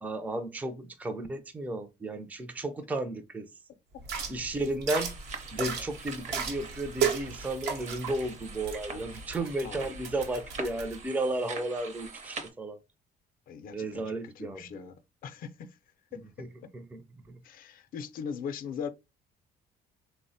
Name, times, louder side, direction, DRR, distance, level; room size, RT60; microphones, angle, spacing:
voice 1, 0.0-3.5 4.3-5.1 5.5-12.8 13.7-14.9 16.4-16.5 16.7-17.0 17.3-17.4, right 2 dB, 10° right, 0.4 m, -34 dB
sound 1, 4.0-11.0, right 6 dB, 80° right, 0.8 m, -35 dB
sound 2, 4.9-12.5, right 4 dB, 45° right, 0.7 m, -44 dB
voice 2, 9.3-9.9 13.5-14.9 15.2-15.7 17.4-18.9, left 7 dB, 55° left, 0.4 m, -40 dB
3.3 x 2.0 x 2.6 m
cardioid pair, 110°, 17 cm